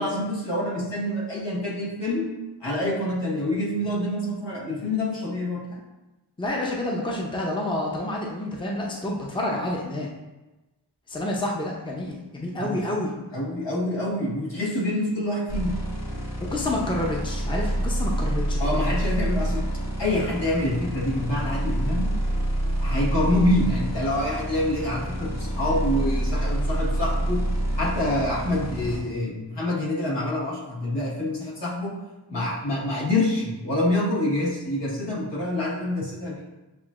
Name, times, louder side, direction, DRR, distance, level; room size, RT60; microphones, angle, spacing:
voice 1, 0.0-2.3 2.6-5.6 12.6-12.8 13.3-15.8 18.6-19.6 20.0-22.1 22.8-27.5 27.7-32.0 32.3-36.4, left 1 dB, 70° left, -5 dB, 1.5 m, -26 dB
voice 2, 6.4-10.1 11.1-13.1 16.4-19.0, left 1 dB, 10° left, -2 dB, 0.7 m, -29 dB
sound 1, 15.5-29.0, right 1 dB, 35° left, 1.2 m, -27 dB
7.8 x 2.6 x 2.5 m, 1.1 s
wide cardioid pair, 60°, 44 cm